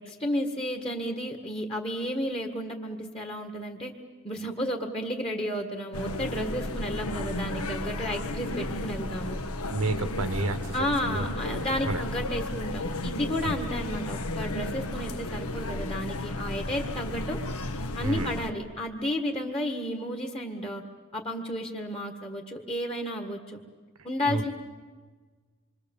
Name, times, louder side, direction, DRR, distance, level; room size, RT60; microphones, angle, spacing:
voice 1, 0.0-3.9 4.2-9.4 10.7-17.4 18.0-20.8 21.1-23.6 24.0-24.5, equal, 25° left, 3 dB, 1.7 m, -32 dB
sound 1, 5.9-18.5, left 1 dB, 85° left, 1.4 m, -33 dB
voice 2, 9.7-10.7 11.0-12.0 13.4-13.5 18.0-18.3 24.3-24.4, right 2 dB, 80° right, 10 dB, 1.4 m, -30 dB
26.5 x 24.0 x 7.2 m, 1.4 s
head